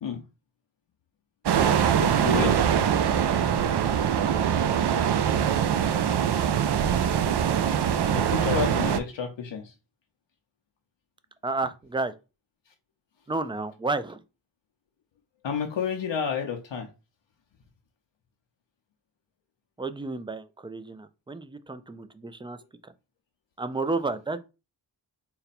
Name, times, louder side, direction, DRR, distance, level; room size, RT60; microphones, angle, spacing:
sound 1, 1.5-9.0, right 8 dB, 65° right, 0.5 m, -23 dB
voice 1, 2.0-2.6 8.1-9.7 15.4-16.9, left 7 dB, 80° left, 0.7 m, -30 dB
voice 2, 11.4-12.1 13.3-14.2 19.8-22.6 22.8-22.9 23.6-24.4, right 3 dB, 10° right, 0.3 m, -31 dB
4.1 x 2.2 x 4.1 m
cardioid pair, 55°, 44 cm